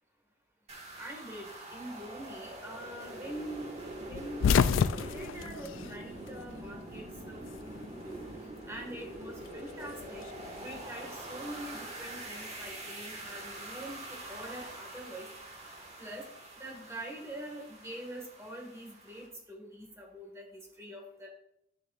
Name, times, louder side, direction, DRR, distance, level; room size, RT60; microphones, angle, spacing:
sound 1, 0.7-19.3, right 1 dB, 35° right, 1.8 m, -45 dB
voice 1, 1.0-3.7 4.0-4.5 4.9-7.7 8.0-8.3 8.7-10.2 10.6-14.0 14.3-15.3 16.0-16.2 16.6-21.3, right 1 dB, 15° right, 0 dB, 1.9 m, -44 dB
sound 2, 4.1-6.6 6.9-8.0 9.2-10.7, left 6 dB, 75° left, 0.3 m, -29 dB
11.5 x 6.9 x 2.5 m, 0.78 s
head